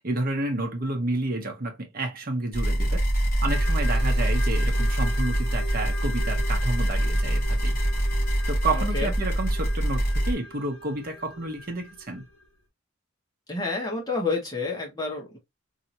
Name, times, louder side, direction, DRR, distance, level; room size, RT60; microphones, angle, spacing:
voice 1, 0.0-3.1 3.4-7.8 8.5-12.3, right 2 dB, 45° right, 0.8 m, -30 dB
sound 1, 2.5-10.3, right 1 dB, 40° left, 1.1 m, -24 dB
sound 2, 3.4-12.5, left 2 dB, 75° left, 1.1 m, -41 dB
voice 2, 8.7-9.1 13.5-15.4, left 3 dB, 20° left, 1.3 m, -29 dB
2.8 x 2.8 x 2.6 m
head